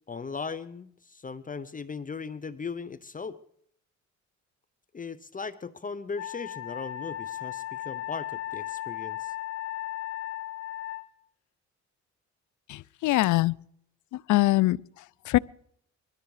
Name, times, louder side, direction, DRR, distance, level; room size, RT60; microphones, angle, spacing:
voice 1, 0.1-3.4 4.9-9.3, left 5 dB, 25° left, 0.8 m, -38 dB
Wind instrument woodwind instrument, 6.2-11.1, left 13 dB, 60° left, 1.7 m, -36 dB
voice 2, 12.7-13.6 14.1-14.8 15.3-15.4, left 18 dB, 75° left, 0.5 m, -23 dB
21.0 x 13.5 x 4.9 m
cardioid pair, 90°, 30 cm